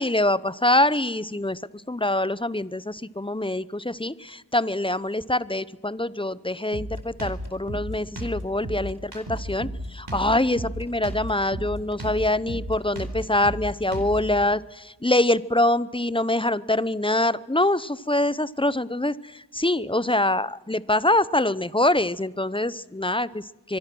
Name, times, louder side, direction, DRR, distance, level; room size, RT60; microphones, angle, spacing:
voice 1, 0.0-1.6 1.9-23.8, left 1 dB, 10° left, 17 dB, 0.7 m, -24 dB
Drum kit, 6.7-14.4, right 1 dB, 70° right, 4.5 m, -33 dB
24.5 x 24.0 x 6.2 m, 1.1 s
wide cardioid pair, 45°, 43 cm